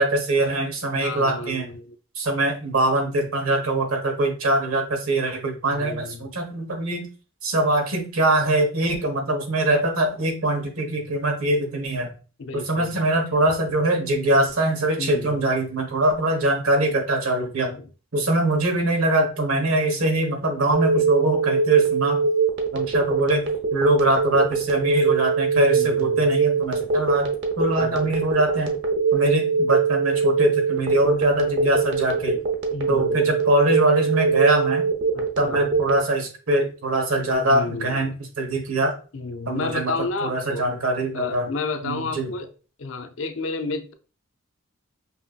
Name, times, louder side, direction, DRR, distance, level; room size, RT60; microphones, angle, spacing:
voice 1, 0.0-1.7 2.1-7.1 7.4-12.1 12.5-17.7 18.1-22.2 22.7-23.4 23.7-27.3 27.6-28.7 29.1-32.3 32.9-34.9 35.4-38.9 39.5-39.9 40.2-41.5 41.8-42.3, right 1 dB, 80° right, 3 dB, 1.2 m, -23 dB
voice 2, 0.9-1.9 5.7-6.3 12.4-13.0 15.0-15.4 17.6-17.9 25.5-26.3 27.8-28.1 32.7-33.4 35.1-35.6 37.4-38.1 39.1-40.7 41.1-42.5 42.8-43.9, left 3 dB, 65° left, 7 dB, 0.5 m, -32 dB
Telephone, 20.7-36.0, right 5 dB, 55° right, 0.7 m, -22 dB
5.4 x 2.7 x 2.4 m, 0.36 s
head